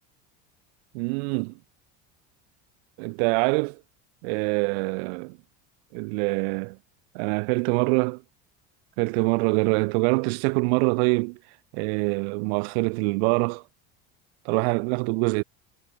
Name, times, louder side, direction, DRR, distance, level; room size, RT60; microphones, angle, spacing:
voice 1, 0.9-1.5 3.0-3.8 4.2-5.4 5.9-6.8 7.1-8.2 9.0-11.4 11.7-13.6 14.4-15.4, right 35 dB, 85° right, 0.6 m, -24 dB
cardioid pair, 155°, 31 cm